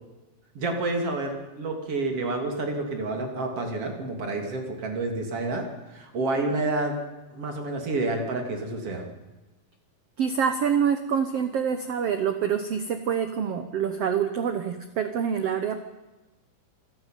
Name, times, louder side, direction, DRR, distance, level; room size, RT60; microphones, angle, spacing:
voice 1, 0.6-5.7 5.9-7.0 7.3-9.1, right 2 dB, 40° right, 3 dB, 3.7 m, -29 dB
voice 2, 10.2-15.9, right 7 dB, 90° right, 8 dB, 1.3 m, -26 dB
26.0 x 12.0 x 9.2 m, 1.1 s
omnidirectional pair, 4.4 m